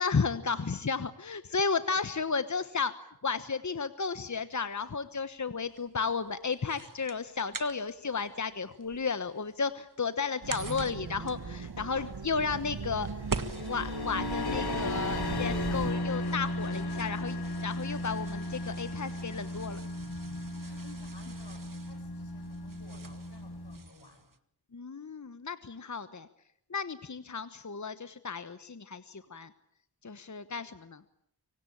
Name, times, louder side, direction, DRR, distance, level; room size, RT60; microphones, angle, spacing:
voice 1, 0.0-2.9 3.2-13.1 13.7-19.8 24.7-26.3 26.7-29.5 30.0-31.0, left 5 dB, 45° left, 12 dB, 1.3 m, -33 dB
sound 1, 4.5-24.4, right 4 dB, 50° right, 1.9 m, -46 dB
sound 2, 10.4-15.9, right 5 dB, 70° right, 1.9 m, -38 dB
sound 3, 13.1-23.8, left 2 dB, 65° left, 2.8 m, -35 dB
voice 2, 20.4-24.3, left 3 dB, 90° left, 6 dB, 7.1 m, -57 dB
25.5 x 24.5 x 8.9 m, 0.72 s
wide cardioid pair, 70°, 40 cm